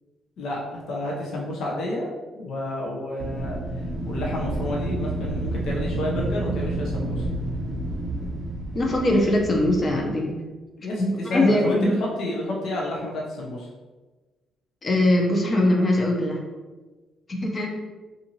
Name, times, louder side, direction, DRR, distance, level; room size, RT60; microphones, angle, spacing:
voice 1, 0.4-2.1 2.3-3.6 4.1-7.2 10.8-13.7, left 1 dB, 70° left, -3 dB, 0.6 m, -30 dB
Wind, 3.2-10.1, right 2 dB, 45° right, 0.5 m, -29 dB
voice 2, 8.7-10.3 11.0-12.0 14.8-16.4 17.4-17.7, left 1 dB, 35° left, 0 dB, 0.6 m, -21 dB
2.7 x 2.5 x 2.8 m, 1.2 s
cardioid pair, 90°, 0 cm